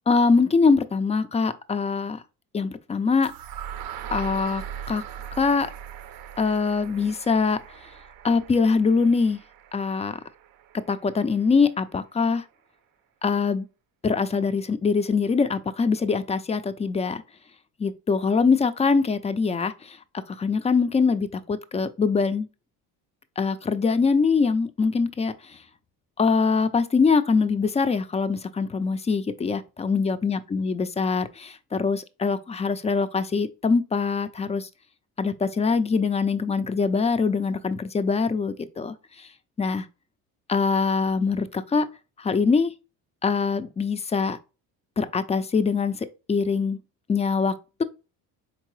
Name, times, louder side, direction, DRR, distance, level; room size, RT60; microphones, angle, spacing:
voice 1, 0.1-2.2 2.5-3.3 4.1-5.0 5.3-5.7 6.4-7.6 8.2-9.4 9.7-10.2 10.9-12.4 13.2-13.7 14.0-17.2 17.8-20.0 20.3-22.5 23.4-25.6 26.2-34.7 35.2-39.3 39.6-39.9 40.5-41.9 42.2-42.7 43.2-44.4 45.0-46.8 47.1-47.5, left 4 dB, 15° left, 0.3 m, -23 dB
sound 1, 3.2-11.2, right 9 dB, 50° right, 0.5 m, -40 dB
4.5 x 3.7 x 3.1 m
supercardioid pair, 75°, 49 cm